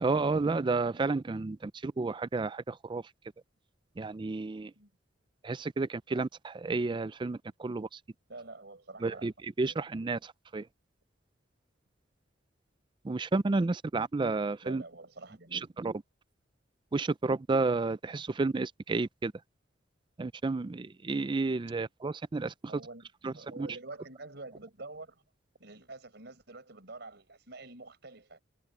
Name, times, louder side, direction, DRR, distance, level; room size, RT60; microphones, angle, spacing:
voice 1, 0.0-3.0 4.0-4.7 5.4-8.0 9.0-9.3 9.6-10.7 13.0-14.8 15.5-15.9 16.9-19.3 20.2-22.5 23.2-23.3 23.6-23.7, right 3 dB, 25° right, 0.4 m, -31 dB
voice 2, 8.3-9.3 9.7-9.9 14.6-15.7 22.7-25.2 25.6-28.4, right 2 dB, 65° right, 5.9 m, -47 dB
head